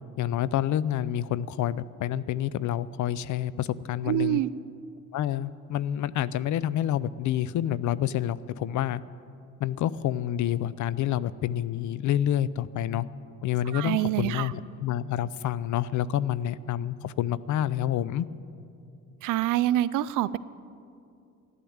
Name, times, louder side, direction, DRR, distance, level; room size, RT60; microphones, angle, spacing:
voice 1, 0.2-4.4 5.1-9.0 9.6-13.1 13.4-18.3, left 11 dB, 75° left, 18 dB, 0.6 m, -28 dB
voice 2, 4.1-4.5 13.7-14.5 19.2-20.4, right 14 dB, 85° right, 17 dB, 0.5 m, -26 dB
13.5 x 11.5 x 8.7 m, 2.5 s
cardioid pair, 90°, 30 cm